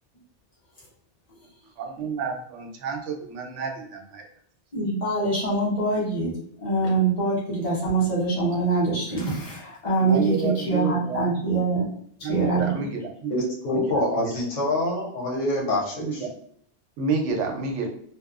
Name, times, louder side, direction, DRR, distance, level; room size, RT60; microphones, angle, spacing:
voice 1, 1.8-4.3 10.0-11.3 12.2-13.3 13.7-14.3 16.0-16.3 17.0-17.9, right 5 dB, 80° right, 2 dB, 0.9 m, -30 dB
voice 2, 4.7-11.9 12.2-12.9, right 3 dB, 35° left, -7 dB, 0.9 m, -24 dB
voice 3, 13.3-16.3, left 1 dB, 85° left, -2 dB, 1.0 m, -26 dB
2.7 x 2.2 x 2.4 m, 0.63 s
omnidirectional pair, 1.2 m